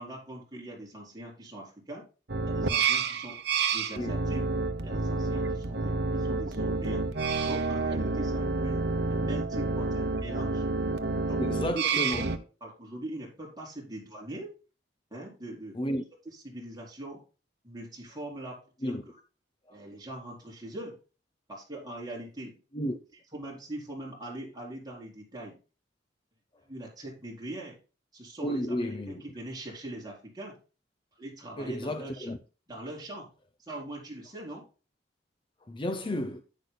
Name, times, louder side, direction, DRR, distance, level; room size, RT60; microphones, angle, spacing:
voice 1, 0.0-2.0 2.4-3.4 3.7-4.4 4.8-7.1 7.5-8.8 9.1-10.6 11.3-12.0 12.6-14.5 15.1-15.8 16.4-17.2 17.6-18.9 19.7-20.9 21.5-22.6 23.3-25.6 26.7-27.8 28.1-28.7 29.1-30.6 31.2-32.3 32.7-33.3 33.6-34.6, right 1 dB, 20° right, 4.4 m, -41 dB
Halloween - Organ Music, 2.3-12.4, right 4 dB, 60° right, 1.0 m, -29 dB
voice 2, 11.4-12.3 15.7-16.0 18.8-19.0 19.7-19.8 22.7-23.0 28.4-29.3 31.6-32.4 35.7-36.4, left 1 dB, 25° left, 0.6 m, -32 dB
10.5 x 9.7 x 2.2 m
head